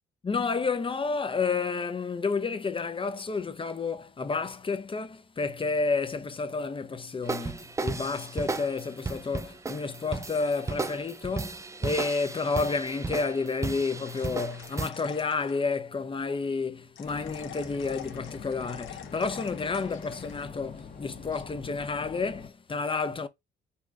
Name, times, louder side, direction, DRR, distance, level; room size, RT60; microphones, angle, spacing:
voice 1, 0.2-23.3, left 4 dB, 25° left, 0.7 m, -30 dB
sound 1, 7.3-14.9, right 3 dB, 15° right, 0.4 m, -35 dB
sound 2, 14.0-15.6 17.0-20.5, left 10 dB, 75° left, 0.9 m, -47 dB
sound 3, 17.0-22.5, left 5 dB, 40° left, 1.2 m, -44 dB
4.2 x 2.5 x 4.6 m
cardioid pair, 90°, 20 cm